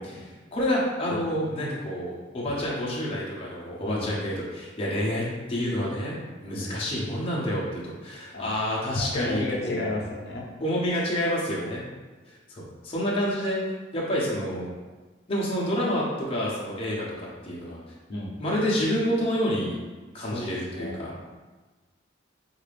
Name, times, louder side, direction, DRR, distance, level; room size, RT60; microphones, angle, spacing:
voice 1, 0.0-9.9 10.6-11.8 12.3-14.7 15.3-17.8 18.4-19.8 20.1-21.2, equal, 30° left, -5 dB, 0.7 m, -28 dB
voice 2, 1.1-1.5 3.8-4.2 6.5-6.7 8.3-8.5 8.9-10.5 18.1-18.3 20.2-21.2, left 2 dB, 55° left, -2 dB, 0.8 m, -33 dB
4.3 x 2.5 x 3.3 m, 1.3 s
head